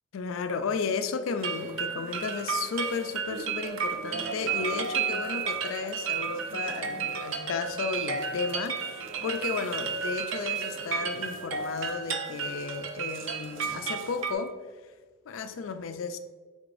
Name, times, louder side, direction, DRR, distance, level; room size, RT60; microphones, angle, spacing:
voice 1, 0.1-14.6 15.3-16.2, left 5 dB, 80° left, 9 dB, 0.4 m, -34 dB
sound 1, 1.4-14.3, right 6 dB, 70° right, 0.5 m, -32 dB
4.8 x 4.2 x 2.5 m, 1.4 s
head